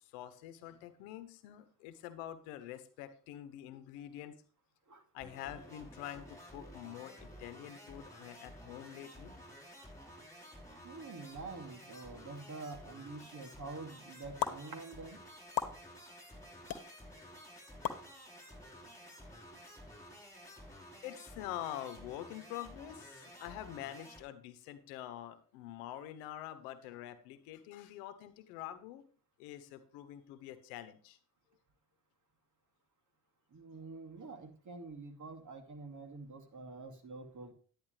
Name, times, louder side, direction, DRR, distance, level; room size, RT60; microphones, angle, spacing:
voice 1, 0.0-4.4 5.1-9.3 16.7-16.9 21.0-29.0 29.4-31.2, left 12 dB, 90° left, 12 dB, 1.1 m, -46 dB
sound 1, 5.2-24.2, equal, 5° left, 5.6 m, -53 dB
voice 2, 10.8-15.2 33.5-37.5, right 3 dB, 40° right, 5 dB, 2.6 m, -47 dB
sound 2, 14.4-14.5 15.6-15.7 16.7-16.8 17.8-18.0, left 9 dB, 50° left, 1.4 m, -33 dB
11.0 x 9.7 x 3.3 m, 0.42 s
supercardioid pair, 60°, 44 cm